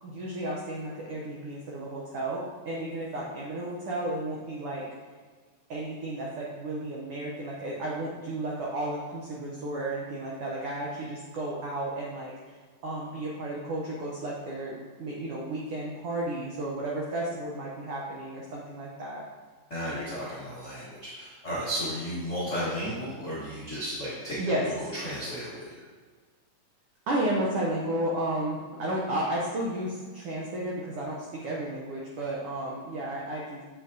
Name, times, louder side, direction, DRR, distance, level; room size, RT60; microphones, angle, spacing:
voice 1, 0.0-4.9 5.7-12.6 12.8-19.2 24.4-24.7 27.1-33.6, right 1 dB, 80° right, -3 dB, 1.2 m, -33 dB
voice 2, 19.7-25.8, equal, 75° left, -9 dB, 0.6 m, -34 dB
7.4 x 5.8 x 2.7 m, 1.5 s
omnidirectional pair, 3.6 m